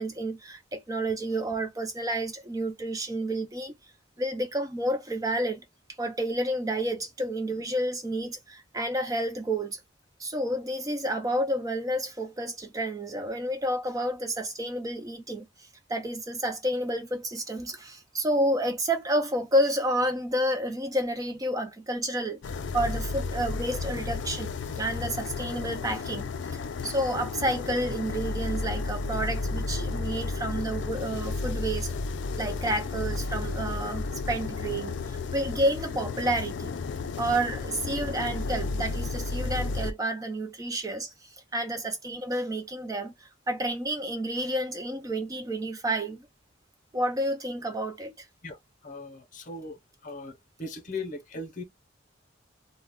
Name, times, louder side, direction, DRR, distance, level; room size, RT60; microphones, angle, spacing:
voice 1, 0.0-3.7 4.2-5.6 6.0-9.8 10.2-31.9 32.4-36.8 37.2-46.3 46.9-48.3, right 1 dB, 20° right, 0.4 m, -30 dB
sound 1, 22.4-39.9, left 3 dB, 65° left, 0.3 m, -32 dB
voice 2, 48.4-49.8 50.0-51.6, left 2 dB, 40° left, 0.7 m, -39 dB
2.3 x 2.1 x 3.5 m
head